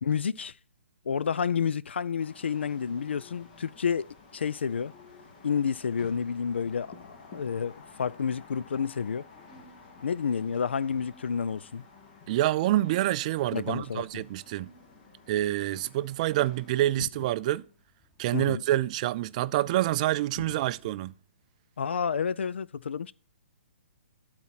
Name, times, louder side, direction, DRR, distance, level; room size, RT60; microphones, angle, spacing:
voice 1, 0.0-0.5 1.1-4.9 5.4-7.7 8.0-9.3 10.0-11.8 13.5-14.2 17.0-17.1 18.3-18.6 21.8-23.1, left 6 dB, 75° left, 0.4 m, -30 dB
sound 1, 2.2-16.8, left 4 dB, 40° left, 1.9 m, -53 dB
sound 2, 2.4-20.9, equal, 5° left, 1.6 m, -61 dB
voice 2, 12.3-14.7 15.3-17.6 18.2-21.1, right 14 dB, 40° right, 0.4 m, -27 dB
12.0 x 4.3 x 5.8 m
hypercardioid pair, 130°, 6 cm